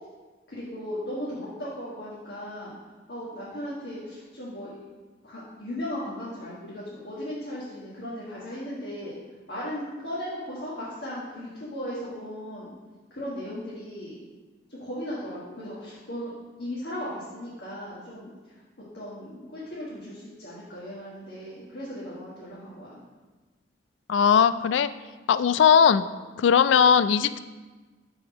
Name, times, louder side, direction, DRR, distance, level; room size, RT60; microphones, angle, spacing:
voice 1, 0.5-2.7 3.1-4.7 5.2-9.2 9.5-12.7 13.1-14.1 14.7-16.3 16.6-18.3 18.9-23.0, equal, 65° left, -8 dB, 1.7 m, -36 dB
voice 2, 24.1-24.9 25.3-26.0 26.4-27.4, left 7 dB, 85° left, 14 dB, 0.3 m, -19 dB
5.9 x 4.9 x 6.1 m, 1.3 s
head